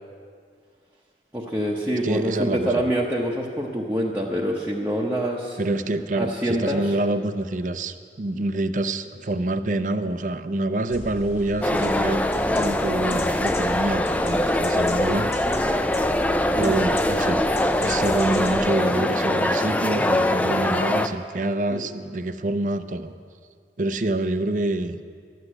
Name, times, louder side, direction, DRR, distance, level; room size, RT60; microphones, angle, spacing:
voice 1, 1.3-5.6 6.2-6.9 21.7-21.8, equal, 10° right, -4 dB, 0.8 m, -26 dB
voice 2, 2.0-2.8 5.6-15.3 16.6-17.4 17.8-23.1 23.8-25.0, right 2 dB, 45° right, 11 dB, 0.5 m, -26 dB
sound 1, 10.9-18.7, left 1 dB, 35° left, 1.6 m, -37 dB
sound 2, 11.6-21.1, left 1 dB, 10° left, 0.4 m, -22 dB
12.5 x 8.0 x 9.8 m, 2.2 s
head